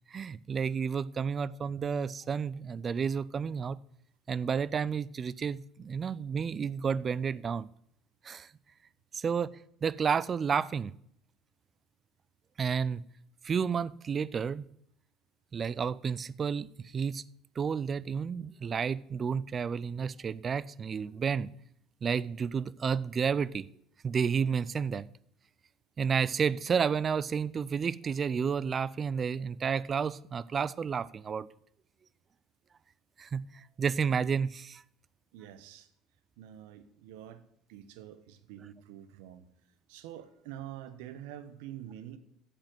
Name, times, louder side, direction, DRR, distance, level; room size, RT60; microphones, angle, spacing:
voice 1, 0.1-3.8 4.3-7.7 8.2-8.5 9.1-9.5 9.8-10.9 12.6-13.0 13.4-14.7 15.5-17.2 17.6-21.5 22.0-23.7 24.0-25.1 26.0-31.5 33.2-34.8, right 6 dB, 35° right, 0.4 m, -31 dB
voice 2, 35.3-35.9 36.4-37.4 37.7-39.5 39.9-42.2, right 11 dB, 85° right, 1.1 m, -46 dB
9.0 x 7.6 x 7.8 m
supercardioid pair, 95°, 0 cm